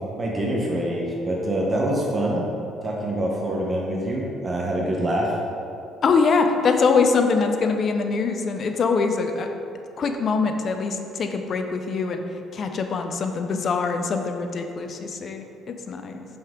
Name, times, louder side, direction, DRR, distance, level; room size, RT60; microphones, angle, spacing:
voice 1, 0.2-2.4 2.8-5.3, right 1 dB, 25° right, -2 dB, 0.9 m, -25 dB
voice 2, 6.0-9.5 10.0-12.2 12.5-16.3, left 4 dB, 45° left, 6 dB, 0.5 m, -23 dB
5.7 x 5.3 x 3.7 m, 2.8 s
cardioid pair, 110°, 0 cm